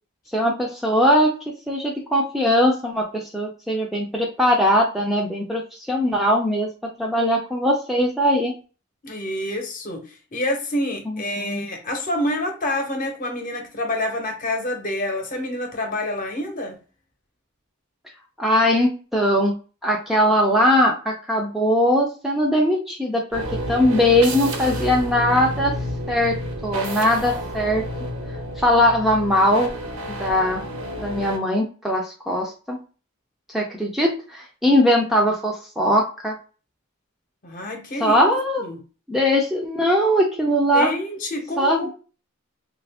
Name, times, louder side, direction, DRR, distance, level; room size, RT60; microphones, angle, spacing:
voice 1, 0.3-1.3 1.7-6.7 7.0-8.5 11.1-11.7 18.4-19.5 19.8-25.7 26.1-26.3 26.6-27.8 28.6-29.7 30.1-30.6 31.0-32.8 33.5-36.3 38.0-38.7 39.1-40.9 41.6-41.9, equal, ahead, -2 dB, 0.4 m, -20 dB
voice 2, 9.0-16.8 37.4-38.3 38.6-38.8 40.7-41.9, left 1 dB, 40° left, 3 dB, 0.8 m, -27 dB
sound 1, 23.3-31.4, equal, 85° right, 0.8 m, -30 dB
2.7 x 2.5 x 3.4 m, 0.36 s
head